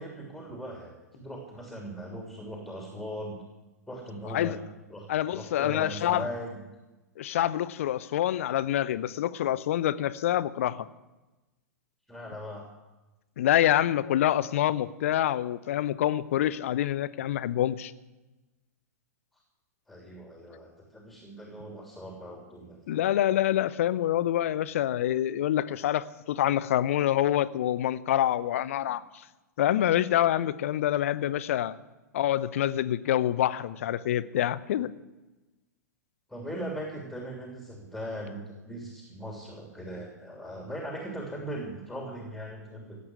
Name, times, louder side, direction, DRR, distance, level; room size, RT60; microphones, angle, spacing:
voice 1, 0.0-3.4 3.9-4.6 4.9-6.6 12.1-12.7 19.9-22.9 36.3-43.0, equal, ahead, 0 dB, 3.0 m, -39 dB
voice 2, 5.1-6.3 7.2-10.9 13.4-17.9 22.9-29.2 29.6-31.8 32.1-34.9, left 12 dB, 55° left, 16 dB, 0.8 m, -26 dB
16.5 x 8.4 x 9.4 m, 1.1 s
figure-of-eight pair, 100°, 9 cm